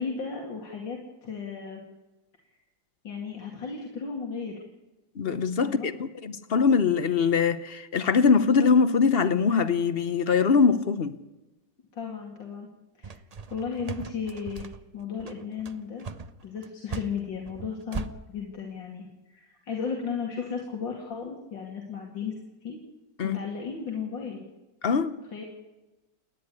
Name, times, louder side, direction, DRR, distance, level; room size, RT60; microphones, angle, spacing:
voice 1, 0.0-1.8 3.0-4.6 5.6-5.9 11.9-12.7 13.0-13.2 13.5-16.1 16.4-22.3 22.6-22.8 23.2-24.4 25.3-25.4, left 6 dB, 85° left, 3.1 m, -35 dB
voice 2, 5.2-11.2 23.2-23.4 24.8-25.2, left 5 dB, 45° left, 0.8 m, -22 dB
sound 1, 13.0-18.1, right 5 dB, 70° right, 0.3 m, -38 dB
28.5 x 10.5 x 9.6 m
omnidirectional pair, 2.0 m